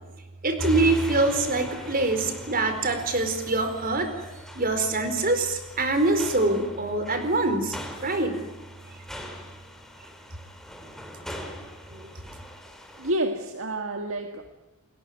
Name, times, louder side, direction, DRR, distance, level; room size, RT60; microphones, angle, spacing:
voice 1, 0.4-4.1 4.5-8.3 11.9-12.1, right 2 dB, 40° right, 8 dB, 4.5 m, -24 dB
sound 1, 0.6-13.1, left 1 dB, ahead, 3.5 m, -39 dB
voice 2, 13.0-14.5, right 1 dB, 60° right, 5 dB, 1.9 m, -29 dB
29.5 x 21.5 x 9.6 m, 1.0 s
head